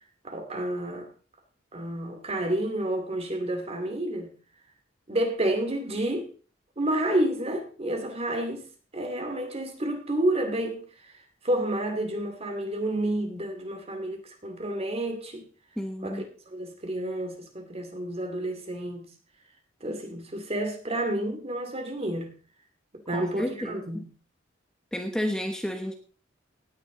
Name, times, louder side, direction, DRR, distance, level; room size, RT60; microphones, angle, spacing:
voice 1, 0.2-1.1 1.7-4.3 5.1-6.3 6.8-8.7 8.9-11.1 11.4-15.4 16.0-19.1 19.8-22.3 23.1-24.1, right 1 dB, 35° right, 6 dB, 2.4 m, -30 dB
voice 2, 15.8-16.2 23.1-24.1 24.9-25.9, equal, 5° left, 4 dB, 1.1 m, -31 dB
17.5 x 9.7 x 3.8 m, 0.38 s
head